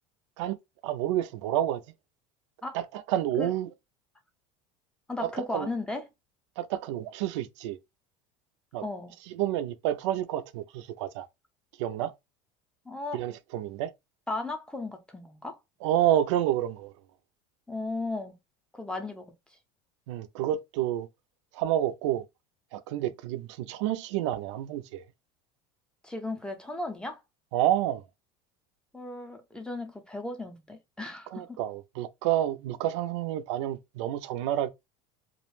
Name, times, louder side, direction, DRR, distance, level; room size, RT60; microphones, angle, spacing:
voice 1, 0.8-1.8 2.7-3.7 5.2-5.7 6.6-7.8 8.7-8.9 9.3-11.3 11.8-12.1 13.1-13.9 15.8-16.9 20.1-21.1 21.5-22.2 22.7-25.0 27.5-28.0 31.3-34.7, right 12 dB, 85° right, 0.4 m, -29 dB
voice 2, 5.1-6.0 8.8-9.1 12.9-13.2 14.3-15.6 17.7-18.4 18.7-19.3 23.0-23.1 26.0-27.2 28.9-31.6, left 2 dB, 5° left, 0.5 m, -35 dB
2.4 x 2.1 x 3.0 m
supercardioid pair, 125°, 15 cm